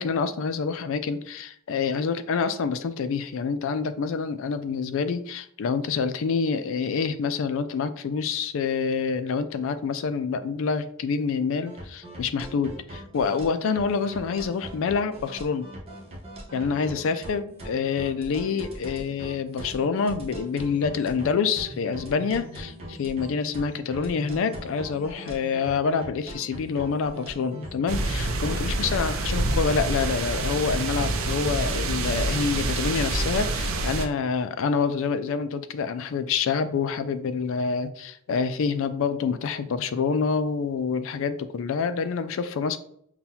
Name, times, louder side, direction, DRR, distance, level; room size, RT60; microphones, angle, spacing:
voice 1, 0.0-15.7 16.5-42.8, left 5 dB, 65° left, 0.4 m, -27 dB
sound 1, 11.7-29.0, equal, 30° right, 0.9 m, -41 dB
sound 2, 27.9-34.1, right 2 dB, 70° right, 0.5 m, -27 dB
5.7 x 2.3 x 2.7 m
head